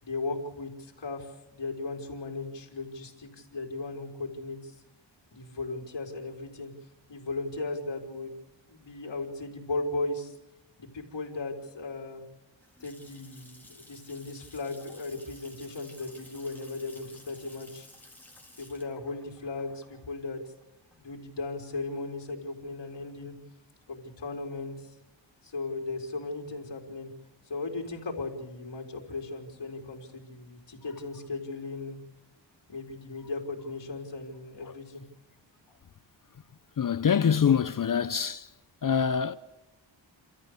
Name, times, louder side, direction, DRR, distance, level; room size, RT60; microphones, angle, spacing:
voice 1, 0.0-4.8 5.3-6.7 7.1-10.3 10.8-12.2 12.8-17.9 18.6-20.5 20.9-23.3 23.9-24.9 25.4-27.1 27.4-32.0 32.7-35.0 35.7-35.8, left 3 dB, 65° left, 4.1 m, -37 dB
Water tap faucet / Sink (filling or washing) / Splash splatter, 12.6-21.2, left 1 dB, 5° left, 4.1 m, -54 dB
voice 2, 36.8-38.5 38.8-39.4, left 7 dB, 45° left, 0.6 m, -25 dB
29.5 x 14.0 x 6.8 m
wide cardioid pair, 110°, 46 cm